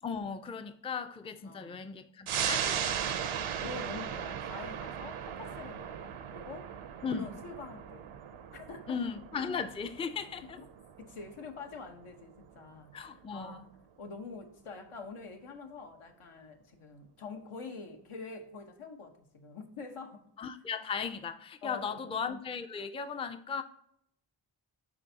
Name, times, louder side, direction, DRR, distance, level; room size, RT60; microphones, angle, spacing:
voice 1, 0.0-2.8 7.0-7.3 8.9-10.6 12.9-13.6 20.4-23.6, left 6 dB, 15° left, 0.3 m, -37 dB
voice 2, 1.4-1.9 3.1-6.7 7.0-8.1 8.5-9.0 10.6-10.7 11.0-20.5 21.6-22.2, left 4 dB, 80° left, 1.0 m, -46 dB
sound 1, 2.3-13.2 13.6-13.7, right 8 dB, 75° right, 0.6 m, -38 dB
9.9 x 3.5 x 2.7 m
cardioid pair, 50°, 50 cm